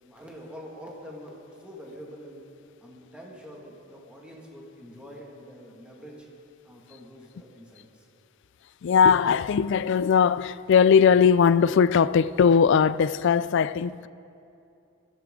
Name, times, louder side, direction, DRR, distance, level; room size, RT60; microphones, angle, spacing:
voice 1, 0.0-2.4 2.8-6.3 6.6-8.1, equal, 5° right, 1.9 m, -45 dB
voice 2, 8.8-14.1, left 6 dB, 55° left, 0.3 m, -20 dB
21.0 x 15.5 x 3.7 m
head